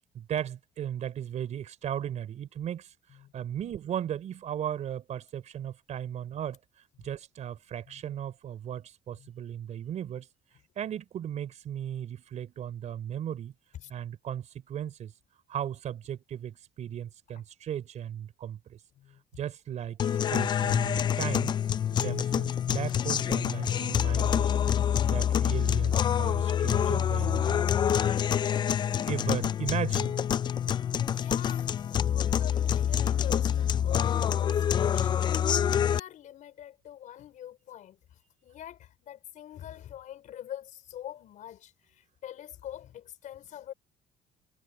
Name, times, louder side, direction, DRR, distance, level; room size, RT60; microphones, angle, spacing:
voice 1, 0.1-2.9 3.3-6.6 7.0-10.3 10.8-13.5 13.9-15.1 15.5-18.8 19.4-21.5 21.9-24.5 25.0-27.6 29.0-30.1, right 10 dB, 50° right, 4.4 m, -36 dB
sound 1, 20.0-36.0, left 9 dB, 30° left, 0.3 m, -26 dB
voice 2, 31.1-31.7 32.0-35.4 35.8-38.0 38.4-43.7, left 11 dB, 55° left, 4.6 m, -44 dB
cardioid pair, 155°, 15 cm